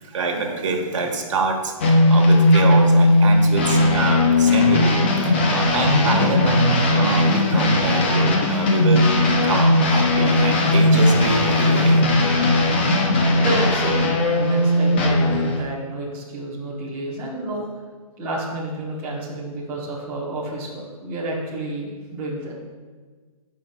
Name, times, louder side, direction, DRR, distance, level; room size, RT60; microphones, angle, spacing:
voice 1, 0.0-12.0, right 3 dB, 55° right, 2 dB, 1.4 m, -25 dB
sound 1, 1.8-15.6, left 1 dB, 20° left, 0.5 m, -17 dB
voice 2, 13.3-17.6 18.2-22.5, right 1 dB, 10° right, -6 dB, 1.1 m, -29 dB
15.5 x 5.7 x 2.3 m, 1.4 s
hypercardioid pair, 175°, 19 cm